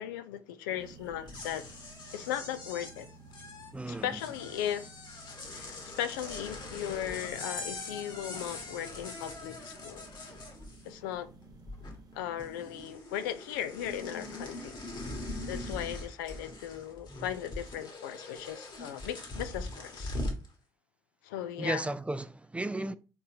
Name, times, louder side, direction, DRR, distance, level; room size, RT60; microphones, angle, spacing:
voice 1, 0.0-1.6 2.1-3.1 3.9-4.9 5.5-10.3 10.8-11.3 12.1-14.8 15.4-20.2 21.2-21.9, left 10 dB, 80° left, 0.4 m, -37 dB
sound 1, 0.7-13.0, right 3 dB, 35° right, 0.8 m, -55 dB
sound 2, 1.1-11.1 11.4-12.1 12.4-20.5, left 2 dB, 45° left, 1.4 m, -42 dB
voice 2, 3.7-4.1 21.6-22.9, right 2 dB, 10° right, 0.4 m, -34 dB
3.9 x 3.7 x 2.8 m
hypercardioid pair, 50°, 11 cm